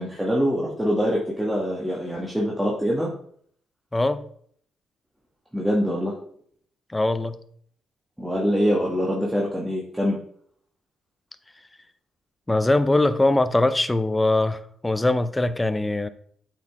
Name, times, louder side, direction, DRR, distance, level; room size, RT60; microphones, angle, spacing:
voice 1, 0.0-3.1 5.5-6.1 8.2-10.2, equal, 5° right, -3 dB, 1.3 m, -24 dB
voice 2, 3.9-4.2 6.9-7.4 12.5-16.1, left 2 dB, 15° left, 12 dB, 0.5 m, -22 dB
8.2 x 4.6 x 3.4 m, 0.62 s
cardioid pair, 90°, 0 cm